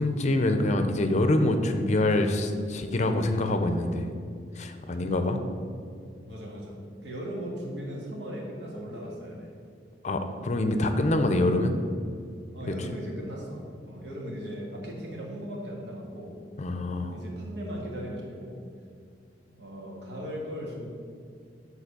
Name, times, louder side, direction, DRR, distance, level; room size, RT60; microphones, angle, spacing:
voice 1, 0.0-4.1 4.6-5.4 10.0-11.8 16.6-17.2, left 1 dB, 40° left, 7 dB, 0.6 m, -25 dB
voice 2, 6.2-9.5 12.5-16.3 17.1-18.5 19.5-20.9, equal, 75° right, -2 dB, 1.9 m, -38 dB
7.6 x 4.0 x 6.7 m, 2.3 s
head